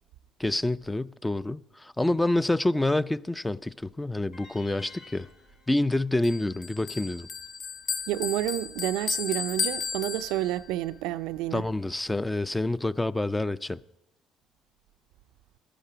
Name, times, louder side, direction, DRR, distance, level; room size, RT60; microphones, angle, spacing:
voice 1, 0.4-5.3 5.7-7.3 11.5-13.8, left 2 dB, 10° left, 0.3 m, -27 dB
sound 1, 4.3-7.5, left 3 dB, 85° left, 3.4 m, -54 dB
Bell, 6.2-10.7, left 6 dB, 60° left, 0.7 m, -34 dB
voice 2, 8.1-11.6, right 14 dB, 85° right, 0.3 m, -29 dB
12.0 x 10.0 x 5.0 m
supercardioid pair, 80°, 0 cm